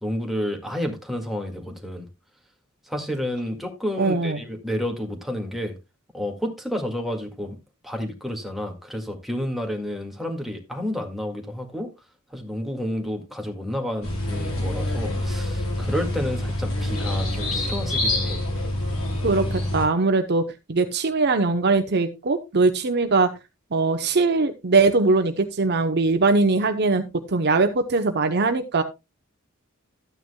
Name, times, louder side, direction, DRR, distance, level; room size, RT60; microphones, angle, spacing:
voice 1, 0.0-2.1 2.9-5.7 6.1-7.6 7.8-11.9 12.3-18.4, equal, ahead, 1.9 m, -30 dB
voice 2, 4.0-4.4 19.2-23.3 23.7-28.8, right 3 dB, 55° right, 0.8 m, -21 dB
sound 1, 14.0-19.9, left 1 dB, 75° left, 4.6 m, -26 dB
13.0 x 9.1 x 2.2 m
head